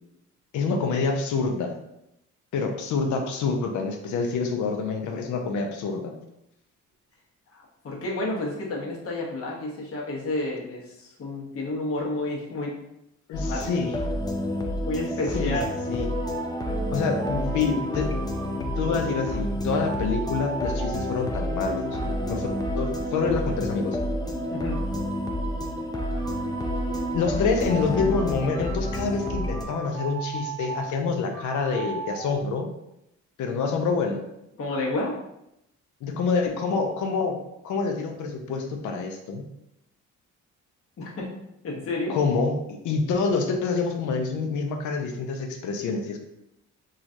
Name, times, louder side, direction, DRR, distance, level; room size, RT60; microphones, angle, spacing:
voice 1, 0.5-1.7 2.5-6.1 13.3-14.0 15.3-15.6 15.9-16.1 16.9-18.1 18.6-22.0 22.3-22.5 22.8-24.0 27.1-32.7 33.4-34.2 36.0-37.4 37.6-39.4 42.1-46.2, left 4 dB, 75° left, 4 dB, 0.6 m, -27 dB
voice 2, 7.5-12.7 13.5-13.6 14.9-15.7 24.5-24.8 34.6-35.2 41.0-41.3 41.6-42.2, left 2 dB, 50° left, -3 dB, 0.8 m, -30 dB
sound 1, 13.3-29.6, left 1 dB, 15° left, 0.4 m, -29 dB
sound 2, 15.5-15.7 16.1-19.4 19.9-23.6 24.3-27.3 27.7-30.9 31.3-32.3, right 6 dB, 75° right, 0.5 m, -38 dB
3.0 x 2.4 x 2.5 m, 0.83 s
cardioid pair, 90°, 30 cm